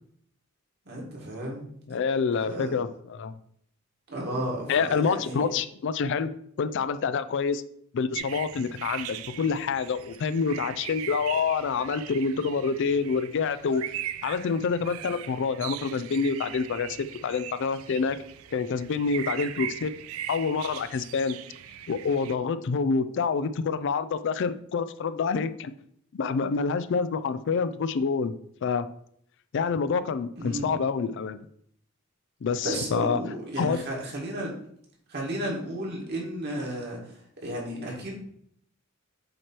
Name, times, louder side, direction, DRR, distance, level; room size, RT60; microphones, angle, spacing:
voice 1, 0.9-1.7 2.4-2.8 4.1-5.5 30.4-30.8 32.6-34.5 35.1-38.2, right 1 dB, 55° right, -2 dB, 1.8 m, -33 dB
voice 2, 1.9-3.3 4.7-6.3 6.6-7.6 7.9-13.8 14.2-18.2 18.5-19.9 20.3-21.4 21.9-25.7 26.1-28.3 28.6-28.9 29.5-31.4 32.4-33.2 33.6-33.8, left 5 dB, 60° left, 13 dB, 0.4 m, -27 dB
sound 1, 8.1-22.4, right 11 dB, 80° right, 0.3 m, -40 dB
7.7 x 3.0 x 4.4 m, 0.68 s
head